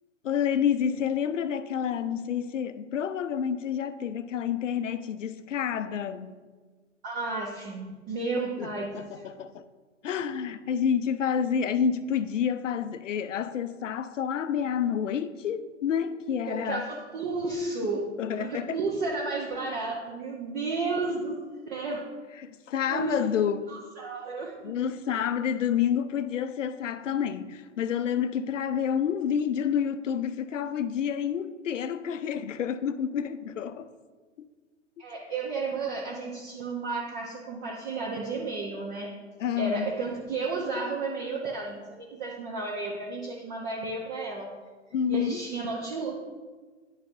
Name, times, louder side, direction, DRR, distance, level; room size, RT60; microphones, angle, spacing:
voice 1, 0.2-6.4 8.6-8.7 8.9-9.6 10.0-16.9 18.2-18.8 22.4-23.7 24.6-33.9 39.4-39.9 44.9-45.5, left 8 dB, 75° left, 0.5 m, -29 dB
voice 2, 7.0-9.3 16.5-18.1 18.4-21.4 21.7-22.0 22.9-23.3 23.7-25.2 35.0-39.1 39.6-44.6 45.1-46.2, right 3 dB, 35° right, 0.9 m, -32 dB
10.0 x 4.1 x 2.6 m
hypercardioid pair, 120°, 37 cm